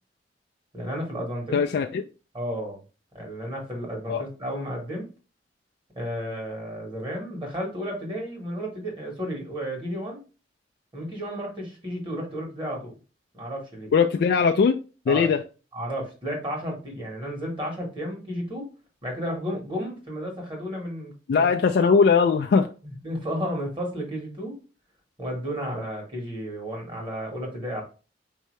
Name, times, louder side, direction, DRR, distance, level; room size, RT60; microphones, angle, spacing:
voice 1, 0.7-1.6 2.3-2.8 3.1-5.1 5.9-10.2 10.9-12.9 13.3-13.9 15.1-15.3 15.7-18.7 19.0-21.5 22.8-24.6 25.2-27.8, equal, 30° right, 0 dB, 1.4 m, -32 dB
voice 2, 1.5-2.0 4.1-4.2 13.9-14.8 15.1-15.4 21.3-22.7, left 5 dB, 60° left, 4 dB, 0.3 m, -20 dB
4.6 x 2.8 x 3.1 m, 0.34 s
head